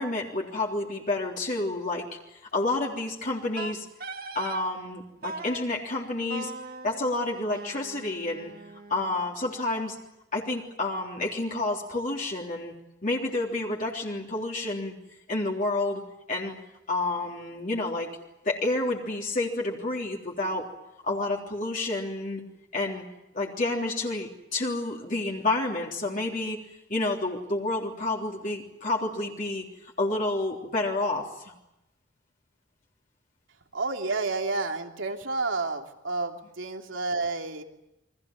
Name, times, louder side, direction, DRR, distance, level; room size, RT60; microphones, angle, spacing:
voice 1, 0.0-3.9 4.3-6.5 6.8-8.5 8.9-10.0 10.3-12.7 13.0-14.9 15.3-16.0 16.3-16.6 16.9-18.1 18.4-20.7 21.0-22.4 22.7-23.0 23.3-26.6 26.9-29.6 30.0-31.5, left 2 dB, 40° left, -1 dB, 3.5 m, -29 dB
Wind instrument woodwind instrument, 3.6-4.7 5.2-5.7 6.3-9.3, right 3 dB, 50° right, 2.0 m, -40 dB
voice 2, 33.7-37.6, right 3 dB, 75° right, 3 dB, 3.1 m, -30 dB
29.5 x 23.5 x 7.4 m, 0.90 s
head